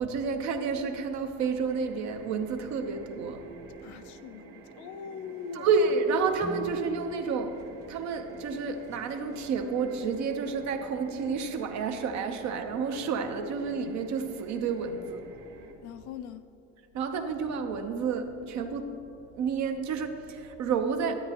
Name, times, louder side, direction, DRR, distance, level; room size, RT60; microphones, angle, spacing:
voice 1, 0.0-3.5 5.5-7.6 7.9-15.3 16.9-19.0 19.3-21.2, right 5 dB, 55° right, 0.9 m, -30 dB
sound 1, 1.7-15.7, right 3 dB, 80° right, 1.5 m, -50 dB
voice 2, 3.8-5.7 15.8-16.5, left 7 dB, 55° left, 0.5 m, -42 dB
Guitar, 6.4-9.0, right 3 dB, 10° right, 0.3 m, -45 dB
12.5 x 8.9 x 3.0 m
supercardioid pair, 95°, 34 cm